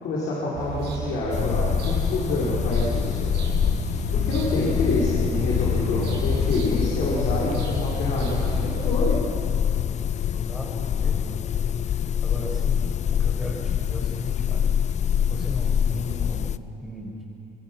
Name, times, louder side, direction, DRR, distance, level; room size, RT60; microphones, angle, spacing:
voice 1, 0.0-3.3 4.2-9.2, left 2 dB, 75° left, -7 dB, 5.1 m, -27 dB
sound 1, 0.5-8.9, right 7 dB, 75° right, 6.2 m, -33 dB
sound 2, 1.3-16.6, left 9 dB, 40° left, 0.5 m, -25 dB
voice 2, 10.3-12.9 13.2-15.0 15.3-17.2, equal, ahead, -3 dB, 5.5 m, -37 dB
26.5 x 21.0 x 6.2 m, 2.8 s
cardioid pair, 100°, 17 cm